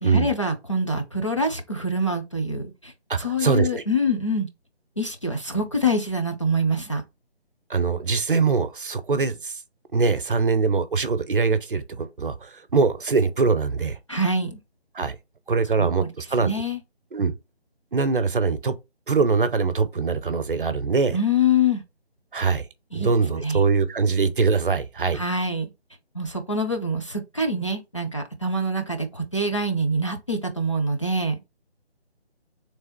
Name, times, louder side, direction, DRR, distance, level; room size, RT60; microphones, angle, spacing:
voice 1, 0.0-2.9 3.2-4.5 5.0-7.0 14.1-14.6 15.8-16.1 16.4-16.8 21.1-21.8 22.9-23.1 23.4-23.6 25.1-25.7 26.1-31.4, left 1 dB, 30° left, 0.5 m, -25 dB
voice 2, 3.1-3.8 7.7-9.6 9.9-14.0 14.9-15.2 15.5-16.5 17.1-17.3 17.9-18.7 19.1-21.2 22.3-22.7 22.9-25.2, right 4 dB, 55° right, 0.6 m, -22 dB
3.4 x 3.3 x 4.3 m
figure-of-eight pair, 155°, 32 cm